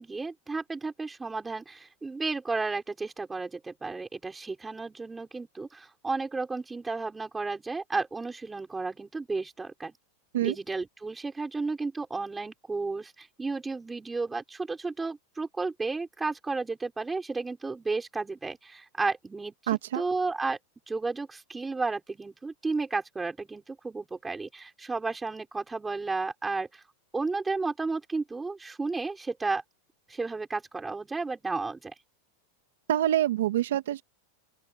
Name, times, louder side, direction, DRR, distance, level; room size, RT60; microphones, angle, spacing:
voice 1, 0.0-9.9 10.4-19.5 19.9-20.6 20.9-26.8 27.1-29.6 30.1-31.9, right 3 dB, 10° right, 5.4 m, -33 dB
voice 2, 19.7-20.0 32.9-34.0, right 12 dB, 85° right, 2.4 m, -26 dB
open air
supercardioid pair, 145°, 0 cm